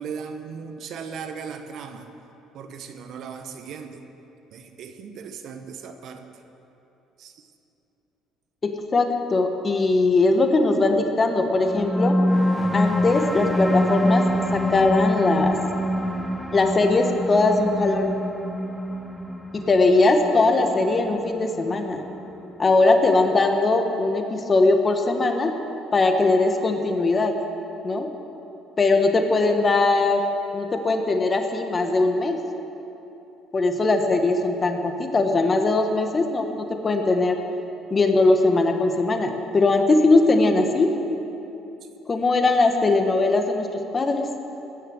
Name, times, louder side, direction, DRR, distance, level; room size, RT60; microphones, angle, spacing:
voice 1, 0.0-2.2 2.5-4.1 4.5-6.3 7.2-7.5, right 6 dB, 60° right, 7 dB, 0.9 m, -37 dB
voice 2, 8.6-12.2 12.7-14.3 14.5-15.6 16.5-18.1 19.5-22.0 22.6-25.5 25.9-27.3 27.8-28.1 28.8-30.2 30.5-32.4 33.5-36.5 36.8-37.4 37.9-40.9 42.1-43.7 43.9-44.3, left 3 dB, 30° left, 5 dB, 1.3 m, -20 dB
sound 1, 11.5-22.5, equal, 5° left, 1.0 m, -25 dB
15.5 x 6.8 x 7.7 m, 3.0 s
supercardioid pair, 90°, 0 cm